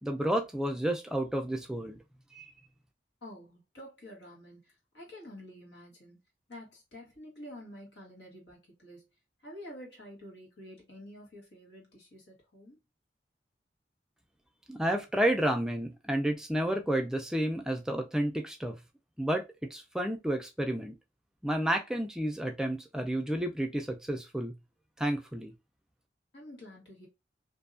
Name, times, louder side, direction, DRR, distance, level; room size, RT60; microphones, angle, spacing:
voice 1, 0.0-2.0 2.3-2.5 14.7-18.8 19.2-20.9 21.4-24.5 25.0-25.5, right 1 dB, 5° right, 0.3 m, -31 dB
voice 2, 3.2-6.2 6.5-9.1 9.4-12.8 26.3-27.1, left 1 dB, 90° left, 1.3 m, -49 dB
2.6 x 2.3 x 2.4 m
head